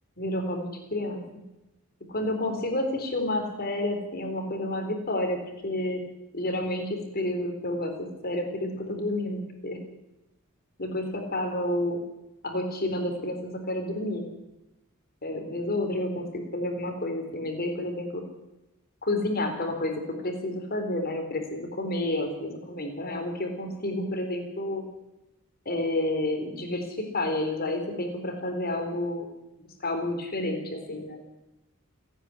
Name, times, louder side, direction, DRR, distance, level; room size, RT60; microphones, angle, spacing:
voice 1, 0.2-1.4 2.1-6.0 6.3-9.8 10.8-12.0 12.4-14.3 15.2-18.2 19.0-19.9 20.2-24.8 25.7-29.3 29.8-31.2, left 1 dB, 45° left, 4 dB, 4.0 m, -30 dB
29.5 x 10.0 x 9.9 m, 0.96 s
head